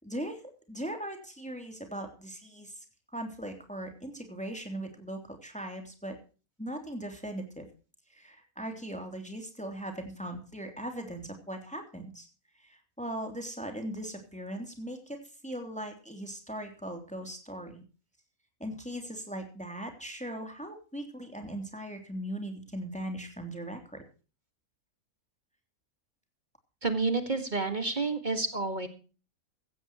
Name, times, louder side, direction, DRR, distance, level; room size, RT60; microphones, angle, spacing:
voice 1, 0.0-2.8 3.1-6.2 6.6-7.7 8.1-12.3 12.6-17.8 18.6-24.0, right 1 dB, 5° left, 4 dB, 3.1 m, -39 dB
voice 2, 26.8-28.9, right 3 dB, 30° right, 8 dB, 2.0 m, -29 dB
16.0 x 15.5 x 3.1 m, 0.36 s
omnidirectional pair, 1.7 m